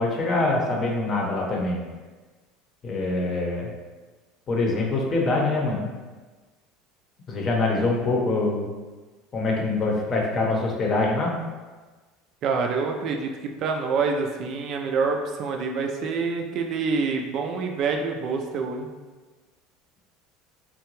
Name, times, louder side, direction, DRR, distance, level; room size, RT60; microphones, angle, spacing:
voice 1, 0.0-1.8 2.8-3.7 4.5-5.9 7.3-8.7 9.3-11.3, left 2 dB, 35° left, -1 dB, 0.7 m, -24 dB
voice 2, 12.4-18.9, right 4 dB, 50° right, 3 dB, 0.4 m, -26 dB
3.7 x 2.2 x 2.9 m, 1.3 s
supercardioid pair, 120°, 0 cm